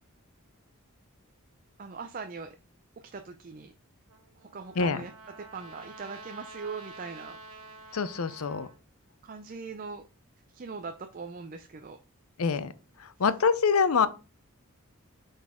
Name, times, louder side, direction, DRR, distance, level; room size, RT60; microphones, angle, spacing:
voice 1, 1.8-2.6 3.1-3.7 4.4-5.1 5.5-7.4 9.2-10.0 10.5-12.0, right 4 dB, 40° right, 0.4 m, -40 dB
Trumpet, 4.1-8.8, right 3 dB, 85° right, 1.3 m, -48 dB
voice 2, 4.8-5.1 7.9-8.7 12.4-12.7 13.0-14.1, left 5 dB, 75° left, 0.6 m, -25 dB
7.6 x 4.0 x 3.6 m
head